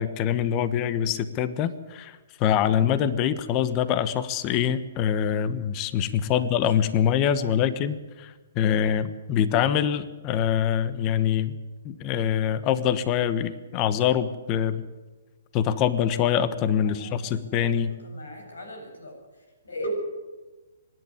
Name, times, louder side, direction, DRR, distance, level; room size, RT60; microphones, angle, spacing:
voice 1, 0.0-11.5 11.8-14.8 15.5-17.9, left 9 dB, 30° left, 14 dB, 1.3 m, -24 dB
voice 2, 6.3-6.9 7.3-7.7 16.8-19.9, equal, 85° left, 3 dB, 7.7 m, -40 dB
24.5 x 11.0 x 9.7 m, 1.2 s
hypercardioid pair, 140°, 0 cm